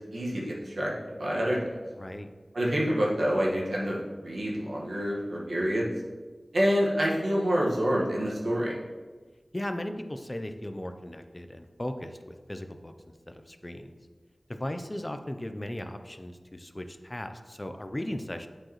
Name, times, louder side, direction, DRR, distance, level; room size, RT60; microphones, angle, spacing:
voice 1, 0.1-1.6 2.5-5.9 6.5-8.7, equal, 85° right, -4 dB, 1.3 m, -27 dB
voice 2, 2.0-2.3 9.5-12.9 13.3-14.0 14.5-18.5, left 1 dB, 25° left, 7 dB, 0.4 m, -37 dB
8.7 x 4.8 x 3.0 m, 1.4 s
wide cardioid pair, 65°, 0 cm